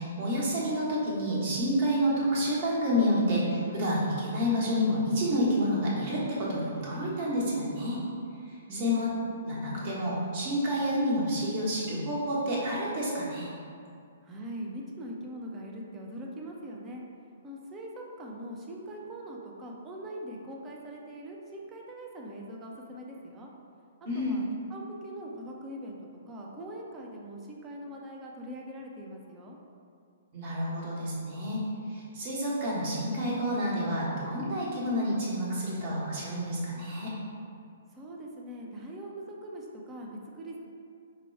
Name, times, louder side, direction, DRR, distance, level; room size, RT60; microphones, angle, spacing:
voice 1, 0.0-8.0 8.4-9.1 9.4-13.5 24.1-24.4 30.3-37.1, equal, 40° right, -6 dB, 1.2 m, -29 dB
voice 2, 8.7-9.1 14.2-17.0 17.4-23.5 24.1-26.0 26.3-29.6 37.9-40.6, right 1 dB, 20° right, -1 dB, 0.6 m, -42 dB
4.7 x 2.2 x 4.5 m, 2.4 s
figure-of-eight pair, 120°, 0 cm